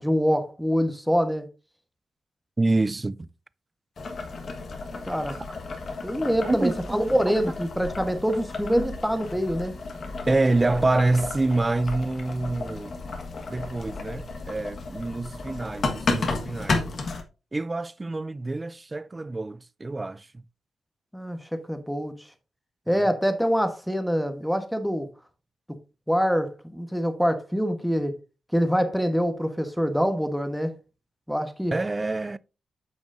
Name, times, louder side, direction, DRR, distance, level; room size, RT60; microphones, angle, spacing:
voice 1, 0.0-1.5 5.0-5.4 6.0-9.7 21.1-22.1 22.9-25.1 26.1-28.2 28.5-30.7 31.3-31.7, equal, ahead, 1.2 m, -25 dB
voice 2, 2.6-3.3 6.4-7.0 8.7-8.9 10.3-13.0 13.5-16.8 17.5-20.4 22.9-23.1 31.7-32.4, right 2 dB, 25° right, 0.4 m, -26 dB
Boiling, 4.0-17.2, left 3 dB, 60° left, 1.5 m, -33 dB
8.9 x 6.2 x 2.6 m
cardioid pair, 80°, 0 cm